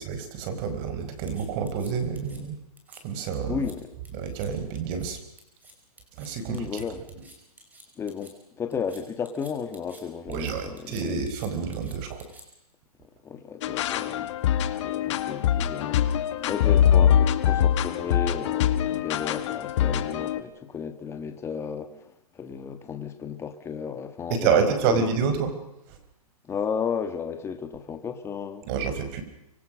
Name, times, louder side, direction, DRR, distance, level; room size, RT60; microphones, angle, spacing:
voice 1, 0.0-2.6 3.0-3.6 4.1-5.2 6.2-6.8 10.3-12.2 24.3-25.5 25.9-26.0 28.7-29.2, right 6 dB, 35° right, 4.7 m, -28 dB
sound 1, 1.3-2.4 2.8-3.0 3.3-3.8 4.0-4.5 4.8-5.1 5.4-8.3 8.7-10.0 10.3-12.7, right 1 dB, 10° right, 5.2 m, -51 dB
voice 2, 3.4-3.9 6.5-7.1 8.0-11.2 13.0-14.4 14.8-25.1 26.4-28.7, left 6 dB, 15° left, 1.7 m, -34 dB
sound 2, 13.6-20.4, left 10 dB, 50° left, 1.7 m, -23 dB
25.5 x 22.5 x 6.4 m
hypercardioid pair, 140°, 20 cm